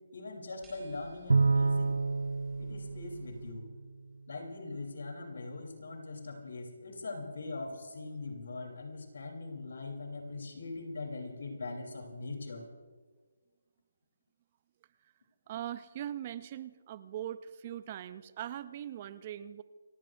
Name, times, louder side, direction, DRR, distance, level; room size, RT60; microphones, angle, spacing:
voice 1, 0.1-2.1 2.6-3.7 4.3-12.6, left 3 dB, 70° left, 3 dB, 3.3 m, -41 dB
sound 1, 0.6-3.5, right 2 dB, 5° right, 5.2 m, -57 dB
Bowed string instrument, 1.3-3.9, right 3 dB, 90° right, 0.4 m, -29 dB
voice 2, 15.5-19.6, right 11 dB, 30° right, 15 dB, 0.4 m, -41 dB
28.5 x 15.0 x 2.6 m, 1.5 s
hypercardioid pair, 165°, 0 cm